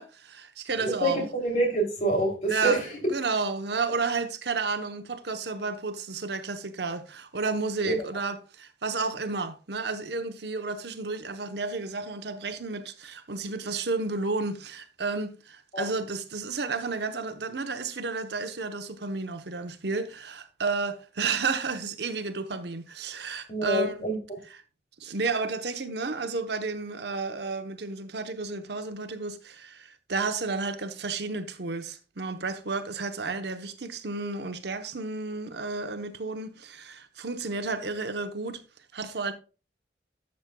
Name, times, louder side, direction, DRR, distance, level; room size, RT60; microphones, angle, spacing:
voice 1, 0.0-1.3 2.5-24.0 24.5-24.6 25.0-38.6 38.9-39.3, right 4 dB, 70° right, 0.9 m, -32 dB
voice 2, 0.8-2.8 7.8-8.0 15.7-15.9 23.5-24.2, right 2 dB, 40° left, 2.9 m, -26 dB
12.0 x 7.4 x 2.3 m
head